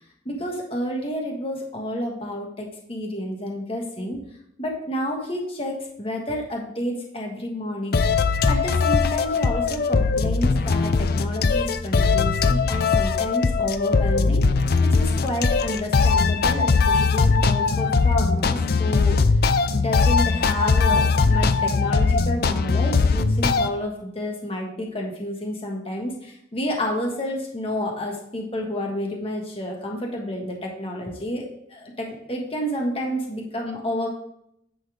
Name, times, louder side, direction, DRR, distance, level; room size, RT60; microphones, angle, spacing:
voice 1, 0.2-4.2 4.6-7.9 8.5-19.2 19.7-34.1, left 1 dB, 30° left, 0 dB, 1.5 m, -30 dB
sound 1, 7.9-23.7, left 4 dB, 55° left, 0.5 m, -20 dB
10.0 x 4.2 x 5.0 m, 0.74 s
head